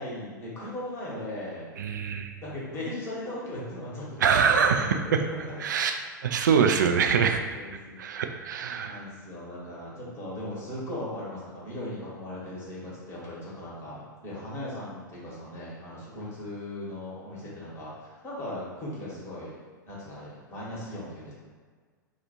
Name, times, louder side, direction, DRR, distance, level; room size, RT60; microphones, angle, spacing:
voice 1, 0.0-1.6 2.4-5.6 6.5-6.6 7.1-8.0 8.8-19.5 19.8-21.3, left 1 dB, 25° left, -6 dB, 1.3 m, -38 dB
voice 2, 1.8-2.3 4.2-5.2 5.6-5.9 6.2-7.4 8.0-9.0, right 6 dB, 65° right, 6 dB, 0.4 m, -24 dB
2.9 x 2.4 x 4.1 m, 1.5 s
figure-of-eight pair, 95°, 11 cm